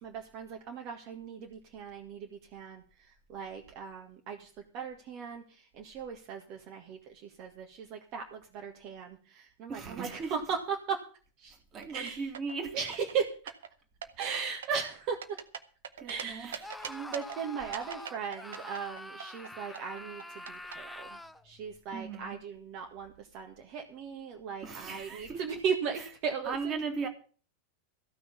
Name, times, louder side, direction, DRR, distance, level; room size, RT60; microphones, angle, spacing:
voice 1, 0.0-11.1 11.4-11.6 11.9-12.3 12.7-13.5 14.2-15.4 16.0-21.2 21.4-26.7, right 6 dB, 40° right, 1.8 m, -37 dB
voice 2, 9.7-10.3 11.7-12.7 16.0-16.6 21.9-22.4 24.6-25.4 26.5-27.1, right 5 dB, 25° right, 2.5 m, -37 dB
sound 1, 11.8-12.6 12.9-13.7 14.0-14.4 14.6-16.2 16.5-17.4 17.7-19.5 19.7-20.7, right 8 dB, 65° right, 1.2 m, -41 dB
Screaming, 16.6-21.4, left 1 dB, 5° left, 0.8 m, -45 dB
15.5 x 6.2 x 8.5 m
figure-of-eight pair, 90°, 0 cm